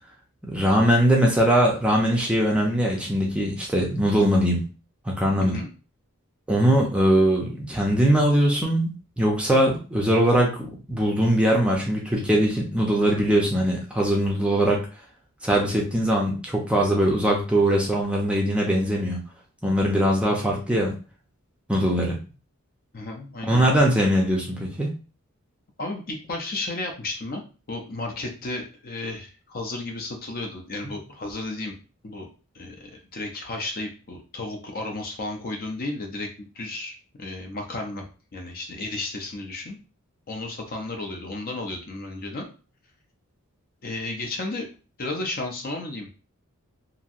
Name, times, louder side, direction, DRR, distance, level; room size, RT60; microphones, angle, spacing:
voice 1, 0.5-4.6 5.1-5.6 6.5-10.6 10.9-14.8 15.4-19.2 19.6-20.9 21.7-22.2 23.5-24.9, right 1 dB, 5° right, -2 dB, 0.5 m, -21 dB
voice 2, 22.9-23.6 25.8-27.4 27.7-31.8 32.0-32.3 32.5-38.0 38.3-39.8 40.3-42.4 43.8-44.7 45.0-46.1, left 2 dB, 40° left, 2 dB, 0.6 m, -33 dB
2.9 x 2.6 x 2.4 m, 0.35 s
head